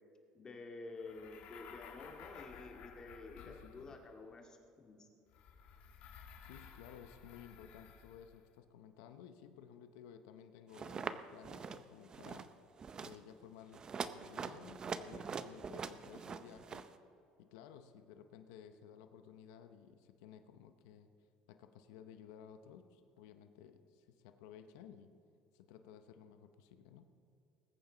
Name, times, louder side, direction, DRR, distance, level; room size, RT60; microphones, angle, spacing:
voice 1, 0.3-5.1, left 3 dB, 30° left, 2 dB, 2.0 m, -50 dB
sound 1, 1.0-4.2 5.3-8.5, left 6 dB, 65° left, 1.6 m, -56 dB
voice 2, 3.4-4.0 6.4-12.5 13.0-16.9 17.4-21.1 21.5-25.1 25.5-27.1, left 8 dB, 90° left, 9 dB, 0.7 m, -56 dB
sound 2, 10.7-11.1 11.4-11.8 12.1-12.5 12.8-13.2 13.7-16.9, right 6 dB, 30° right, 0.6 m, -43 dB
20.5 x 9.1 x 3.9 m, 2.8 s
cardioid pair, 115°, 2 cm